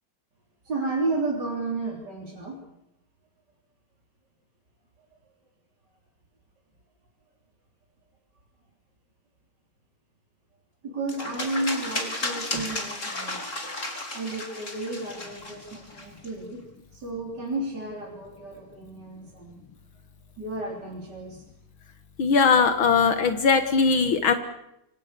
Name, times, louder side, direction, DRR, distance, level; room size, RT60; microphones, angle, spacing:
voice 1, 0.6-2.6 10.8-13.5 14.1-16.7 16.9-19.6 20.4-21.4, right 2 dB, 50° right, -2 dB, 4.5 m, -32 dB
sound 1, 11.1-16.3, left 2 dB, 35° left, 4.1 m, -34 dB
voice 2, 22.2-24.3, left 5 dB, 70° left, 8 dB, 2.3 m, -20 dB
29.0 x 25.0 x 6.8 m, 0.82 s
omnidirectional pair, 2.3 m